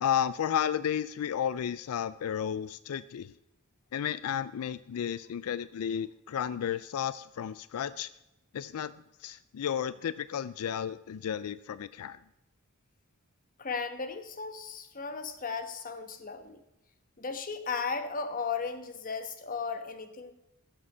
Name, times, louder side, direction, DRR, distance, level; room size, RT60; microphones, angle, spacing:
voice 1, 0.0-3.3 3.9-8.1 8.5-8.9 9.2-12.2, left 9 dB, 85° left, 16 dB, 0.4 m, -32 dB
voice 2, 13.6-16.6 17.2-20.3, left 5 dB, 40° left, 8 dB, 1.2 m, -35 dB
14.0 x 7.9 x 5.5 m, 0.94 s
head